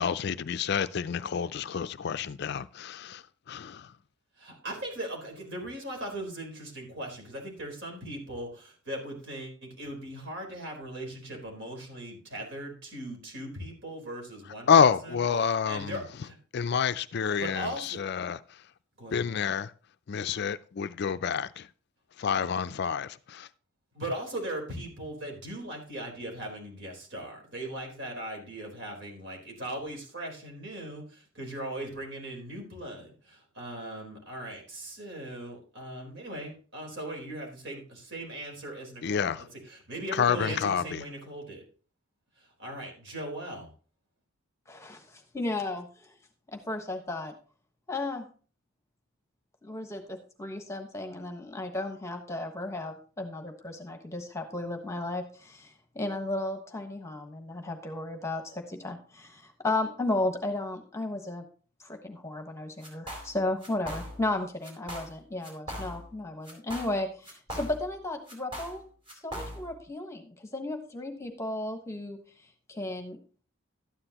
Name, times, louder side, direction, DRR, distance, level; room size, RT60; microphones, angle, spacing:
voice 1, 0.0-3.9 14.7-16.0 16.5-18.4 19.1-19.7 20.1-21.7 22.2-23.5 39.0-39.5 40.1-41.0, left 7 dB, 55° left, 0.4 m, -28 dB
voice 2, 4.4-16.4 17.4-18.0 19.0-19.3 23.9-39.3 39.7-41.6 42.6-43.7, right 1 dB, 60° right, 4.0 m, -39 dB
voice 3, 44.7-46.2 46.5-47.3 47.9-48.3 49.6-61.4 61.8-68.9 69.2-72.2 72.7-73.2, left 2 dB, 15° left, 1.2 m, -34 dB
sound 1, 62.8-63.3 63.6-64.3 64.6-65.2 65.4-66.2 66.5-68.0 68.3-69.8, equal, 25° right, 4.1 m, -40 dB
12.5 x 9.8 x 2.9 m
head